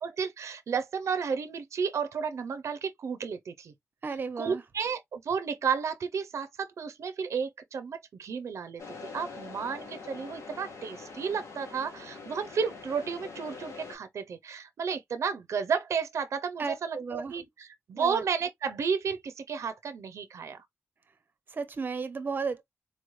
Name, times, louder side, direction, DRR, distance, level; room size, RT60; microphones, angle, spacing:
voice 1, 0.0-3.7 4.4-8.8 9.1-20.6, right 6 dB, 80° right, 0.5 m, -32 dB
voice 2, 4.0-4.6 16.6-17.3 18.0-18.2 21.5-22.6, right 4 dB, 40° right, 0.6 m, -34 dB
sound 1, 8.8-14.0, left 4 dB, 85° left, 1.6 m, -44 dB
4.1 x 3.1 x 2.4 m
wide cardioid pair, 155°, 5 cm